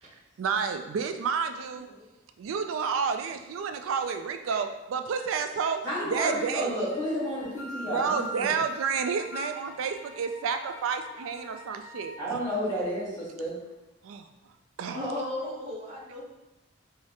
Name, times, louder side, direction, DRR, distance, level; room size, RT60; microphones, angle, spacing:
voice 1, 0.4-1.9 2.4-5.8 6.1-6.7 7.9-12.2 14.0-14.3 14.8-15.1, right 6 dB, 85° right, 7 dB, 0.3 m, -30 dB
voice 2, 5.8-8.6 12.2-13.5, equal, 20° left, -9 dB, 1.2 m, -31 dB
sound 1, 6.9-12.2, left 1 dB, 70° left, 0.8 m, -42 dB
voice 3, 14.9-16.2, left 1 dB, 35° right, -5 dB, 0.7 m, -35 dB
4.8 x 2.0 x 2.7 m, 0.97 s
head